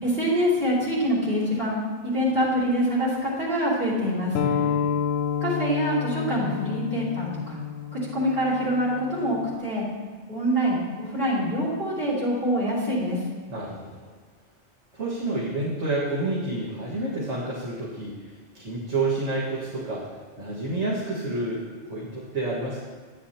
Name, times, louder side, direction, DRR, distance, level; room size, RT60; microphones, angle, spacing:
voice 1, 0.0-4.3 5.4-7.6 7.9-9.9 10.3-13.2, equal, 55° right, -6 dB, 3.5 m, -25 dB
sound 1, 4.3-9.5, left 8 dB, 70° left, 0.8 m, -29 dB
voice 2, 4.4-4.8 13.5-14.1 14.9-18.2 18.5-20.0 20.4-22.8, right 2 dB, 85° right, -7 dB, 2.0 m, -29 dB
13.5 x 10.0 x 2.9 m, 1.5 s
omnidirectional pair, 1.2 m